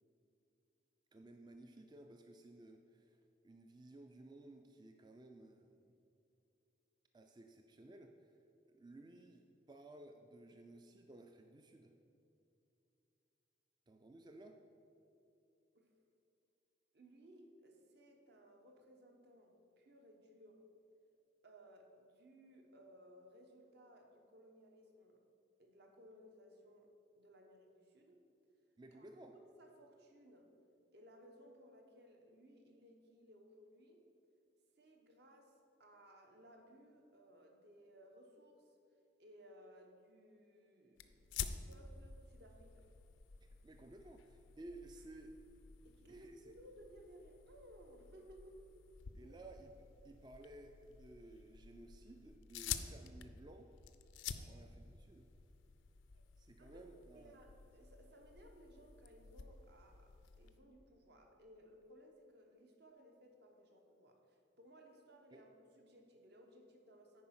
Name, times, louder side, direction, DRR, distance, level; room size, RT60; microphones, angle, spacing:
voice 1, 1.1-5.9 7.1-8.3 8.7-11.9 13.9-14.6 28.8-29.3 43.4-45.4 46.1-46.4 49.1-49.8 50.0-53.7 54.5-55.3 56.4-57.3 65.3-65.5, right 2 dB, 20° right, 5 dB, 0.3 m, -57 dB
voice 2, 16.9-20.7 21.4-25.2 25.6-28.2 28.9-30.5 30.9-34.0 34.8-35.5 35.8-38.7 39.2-42.8 45.8-48.6 49.2-49.4 54.3-54.7 56.1-56.2 56.6-56.9 57.1-60.1 60.4-67.2, equal, 55° right, 2 dB, 1.0 m, -61 dB
sound 1, 41.0-60.6, left 7 dB, 80° left, 0.4 m, -50 dB
9.4 x 4.7 x 5.8 m, 2.8 s
head